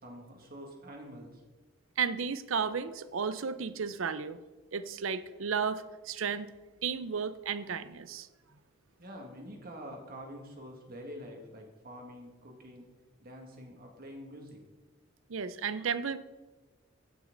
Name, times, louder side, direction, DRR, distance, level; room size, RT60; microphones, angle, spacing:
voice 1, 0.0-1.4 9.0-12.9 13.2-14.6, equal, 45° right, 1 dB, 2.0 m, -46 dB
voice 2, 2.0-4.4 4.7-6.5 6.8-8.3 15.3-16.2, right 6 dB, 70° right, 13 dB, 0.6 m, -33 dB
15.5 x 6.3 x 3.9 m, 1.2 s
head